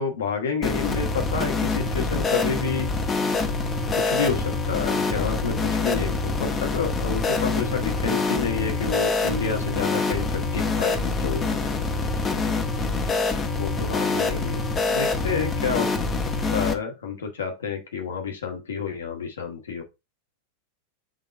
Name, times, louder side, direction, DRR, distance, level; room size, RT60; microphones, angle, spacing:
voice 1, 0.0-2.9 4.0-11.4 13.6-14.6 14.9-15.9 16.5-19.8, left 5 dB, 65° left, 3 dB, 2.1 m, -29 dB
sound 1, 0.6-16.7, left 3 dB, 20° left, 1.3 m, -25 dB
7.4 x 3.9 x 4.3 m, 0.25 s
figure-of-eight pair, 90°, 0 cm